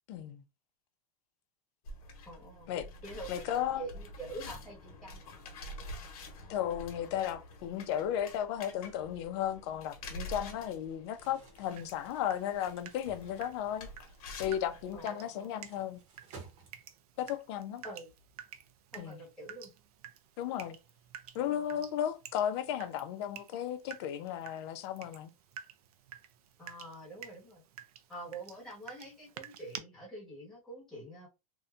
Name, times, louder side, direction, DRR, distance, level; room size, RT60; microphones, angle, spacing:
voice 1, 0.1-0.4 2.7-2.9 3.3-3.8 6.5-13.9 14.4-16.0 17.2-17.8 19.0-19.2 20.4-20.8 21.3-25.3, left 10 dB, 50° left, 0.4 m, -35 dB
sound 1, 1.8-15.0, left 1 dB, 75° left, 0.9 m, -48 dB
voice 2, 2.3-2.7 3.0-5.2 14.9-15.5 17.8-18.1 18.9-19.7 26.6-27.6 28.1-31.3, right 2 dB, 5° left, 1.3 m, -46 dB
Crumpling crinkling, 11.0-17.2, right 4 dB, 55° right, 0.9 m, -57 dB
Water tap faucet / Drip, 11.8-29.8, right 9 dB, 85° right, 0.5 m, -51 dB
2.7 x 2.1 x 2.4 m
supercardioid pair, 155°, 19 cm